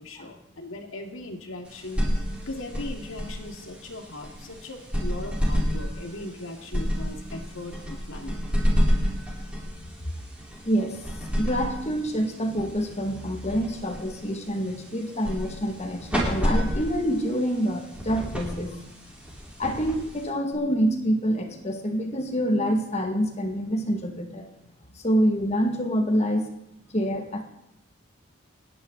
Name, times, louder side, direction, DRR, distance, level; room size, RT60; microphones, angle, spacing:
voice 1, 0.0-2.0 2.4-8.4 10.0-10.1, left 2 dB, 70° left, 3 dB, 2.4 m, -38 dB
sound 1, 1.6-20.5, equal, 5° right, 4.4 m, -30 dB
voice 2, 10.6-18.8 19.6-24.5 25.0-26.5 26.9-27.4, equal, 30° left, 3 dB, 2.1 m, -26 dB
29.5 x 10.5 x 4.1 m, 0.82 s
head